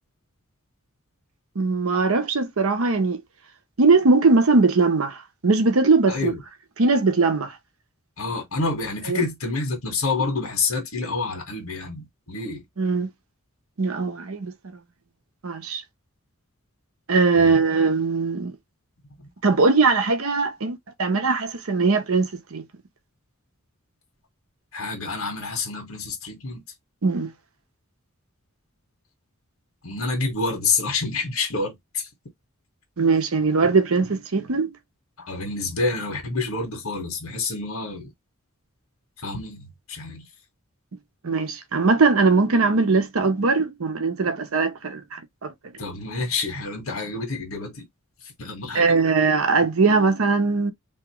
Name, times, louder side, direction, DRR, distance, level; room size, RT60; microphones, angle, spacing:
voice 1, 1.6-3.2 3.8-5.2 5.4-6.3 6.8-7.5 9.1-9.2 12.8-13.1 13.8-14.5 15.4-15.8 17.1-18.5 19.4-22.6 27.0-27.3 33.0-34.7 41.2-45.5 48.7-50.7, right 4 dB, 80° right, 0.8 m, -20 dB
voice 2, 6.1-6.4 8.2-12.6 17.3-17.6 19.2-19.3 24.7-26.6 29.8-32.1 35.2-38.1 39.2-40.3 45.8-47.9 48.2-48.9, left 3 dB, 90° left, 1.4 m, -28 dB
3.5 x 2.9 x 2.9 m
head